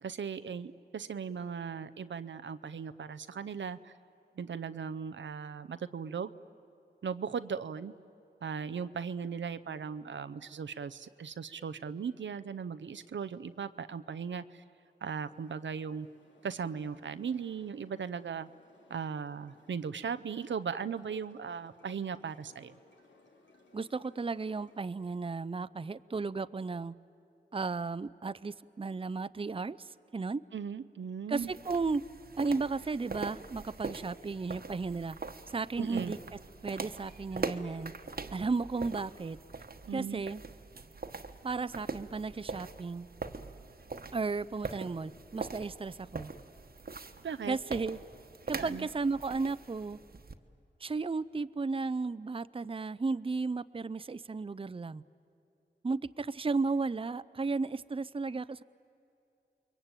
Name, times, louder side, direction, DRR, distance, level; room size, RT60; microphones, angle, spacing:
voice 1, 0.0-3.9 4.4-6.3 7.0-7.9 8.4-14.6 15.0-16.1 16.4-18.5 18.9-22.7 30.5-31.5 35.8-36.1 39.9-40.3 47.2-47.6 48.5-48.9, right 6 dB, 85° right, 13 dB, 0.6 m, -38 dB
sound 1, 15.0-24.8, left 3 dB, 85° left, 2.3 m, -64 dB
voice 2, 23.7-26.9 27.5-30.4 31.3-32.0 32.4-35.2 35.5-36.2 36.6-37.9 38.3-39.4 39.9-40.4 41.4-43.1 44.1-46.3 47.5-48.0 48.5-50.0 50.8-55.0 55.8-58.6, right 4 dB, 30° right, 16 dB, 0.5 m, -34 dB
sound 2, 31.3-50.3, right 4 dB, 55° right, 1.2 m, -43 dB
29.5 x 22.5 x 9.0 m, 2.8 s
cardioid pair, 55°, 19 cm